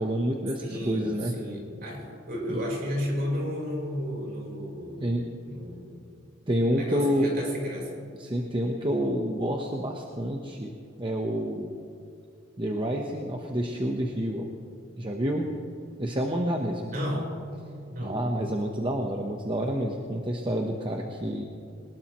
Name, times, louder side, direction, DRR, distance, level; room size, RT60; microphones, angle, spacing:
voice 1, 0.0-1.3 2.5-2.6 5.0-5.2 6.5-7.3 8.2-11.7 12.6-14.5 15.0-15.5 16.0-16.9 18.0-21.5, equal, 25° right, 1 dB, 1.0 m, -28 dB
voice 2, 0.6-5.1 5.5-6.0 6.7-8.0 16.8-17.4 17.9-18.5, equal, 50° right, -1 dB, 4.3 m, -33 dB
22.0 x 19.5 x 3.1 m, 2.5 s
head